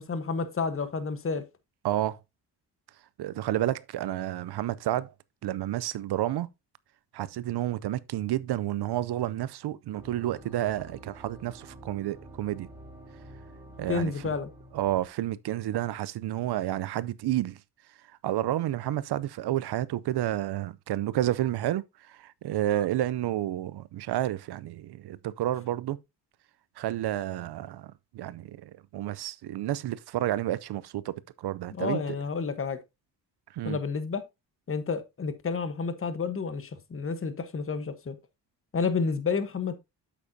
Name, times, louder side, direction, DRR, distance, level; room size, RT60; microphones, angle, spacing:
voice 1, 0.0-1.4 13.9-14.5 31.8-32.8 33.6-34.2 34.7-38.2 38.7-39.8, left 5 dB, 30° left, 1.2 m, -30 dB
voice 2, 1.8-2.2 3.2-5.1 5.4-6.5 7.1-12.7 13.8-14.4 14.7-17.6 18.2-26.0 26.8-32.2 33.5-33.8, right 13 dB, 70° right, 0.6 m, -30 dB
sound 1, 10.0-15.1, right 1 dB, 5° right, 3.0 m, -49 dB
8.4 x 7.3 x 2.7 m
cardioid pair, 80°, 41 cm